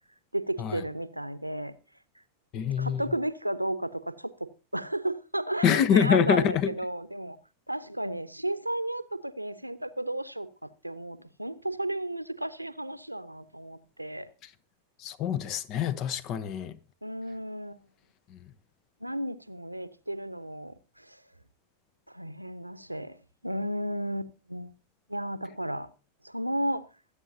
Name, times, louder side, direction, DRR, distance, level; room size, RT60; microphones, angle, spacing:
voice 1, 0.3-1.8 2.8-7.4 7.7-14.3 17.0-17.8 19.0-21.2 22.1-23.2 23.4-24.7 25.1-25.9 26.2-26.8, right 1 dB, 90° right, 0.8 m, -33 dB
voice 2, 2.5-3.0 5.6-6.7 15.0-16.7 18.3-18.4, left 8 dB, 35° left, 1.0 m, -25 dB
24.0 x 8.4 x 2.8 m
figure-of-eight pair, 90°, 0 cm